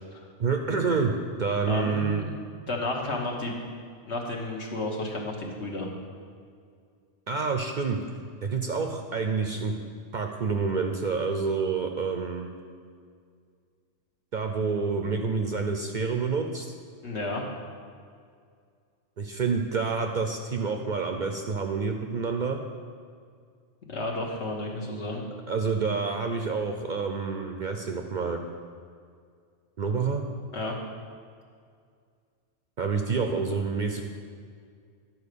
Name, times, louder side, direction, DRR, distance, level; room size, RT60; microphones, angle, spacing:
voice 1, 0.4-1.1 1.4-2.2 7.3-8.0 8.4-9.7 10.1-12.5 14.3-16.7 19.2-22.6 25.5-28.4 29.8-30.3 32.8-34.0, right 5 dB, 55° right, 4 dB, 0.6 m, -28 dB
voice 2, 1.7-2.3 2.7-3.5 4.1-5.9 17.0-17.4 23.9-25.2 30.5-30.7, left 2 dB, 70° left, 0 dB, 1.5 m, -32 dB
11.0 x 4.5 x 6.7 m, 2.2 s
omnidirectional pair, 1.2 m